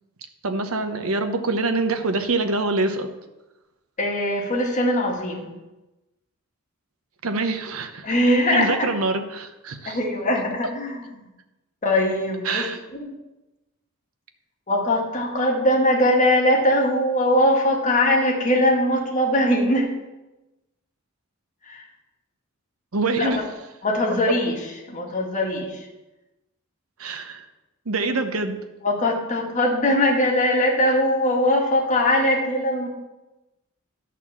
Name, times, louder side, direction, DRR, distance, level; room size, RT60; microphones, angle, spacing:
voice 1, 0.4-3.1 7.2-8.1 8.5-10.0 12.4-12.8 22.9-23.4 27.0-27.4 27.9-28.6, right 3 dB, 70° right, 7 dB, 0.9 m, -25 dB
voice 2, 4.0-5.5 8.0-8.9 9.9-11.1 11.8-12.7 12.9-13.1 14.7-20.0 21.7-21.8 23.2-23.4 23.8-24.6 24.9-25.9 28.8-32.9, left 1 dB, 35° left, -1 dB, 1.8 m, -21 dB
11.0 x 4.3 x 7.2 m, 1.0 s
head